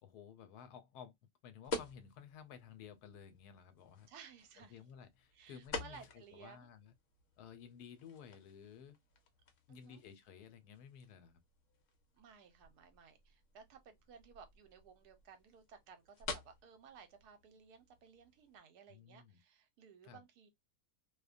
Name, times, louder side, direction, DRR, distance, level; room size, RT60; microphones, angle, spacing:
voice 1, 0.0-1.1 1.4-4.1 4.6-6.9 7.4-9.0 9.7-11.4 18.9-19.4 20.0-20.2, left 7 dB, 80° left, 1.1 m, -55 dB
sound 1, 1.6-18.6, left 3 dB, 60° left, 0.9 m, -50 dB
voice 2, 4.1-4.8 5.3-6.7 9.7-10.0 12.1-20.5, right 6 dB, 75° right, 1.2 m, -58 dB
2.6 x 2.1 x 2.4 m
omnidirectional pair, 1.7 m